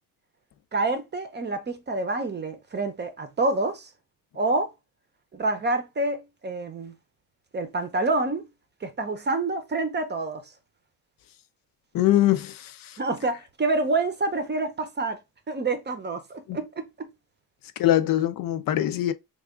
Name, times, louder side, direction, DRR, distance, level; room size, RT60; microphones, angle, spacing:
voice 1, 0.7-3.9 4.3-4.7 5.3-6.9 7.5-8.5 8.8-10.4 13.0-15.2 15.5-17.1, right 2 dB, 25° right, 0.6 m, -27 dB
voice 2, 11.9-13.0 16.5-16.6 17.8-19.1, left 13 dB, 60° left, 0.5 m, -23 dB
3.4 x 2.4 x 3.6 m
cardioid pair, 125°, 38 cm